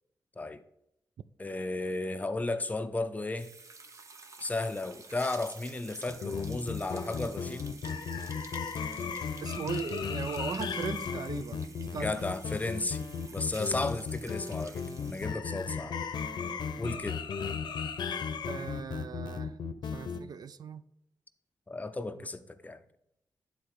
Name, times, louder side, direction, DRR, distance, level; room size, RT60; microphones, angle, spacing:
voice 1, 1.4-3.5 4.4-7.7 11.9-13.0 13.3-16.0 16.8-17.2 21.7-22.8, left 2 dB, 20° left, 0.6 m, -34 dB
sound 1, 3.4-15.3, right 3 dB, 45° right, 0.8 m, -50 dB
sound 2, 6.1-20.2, left 6 dB, 90° left, 0.6 m, -35 dB
voice 2, 9.4-11.7 11.9-12.2 18.5-19.6 19.9-20.8, right 6 dB, 65° right, 0.4 m, -38 dB
10.0 x 4.1 x 4.7 m
wide cardioid pair, 125°, 7 cm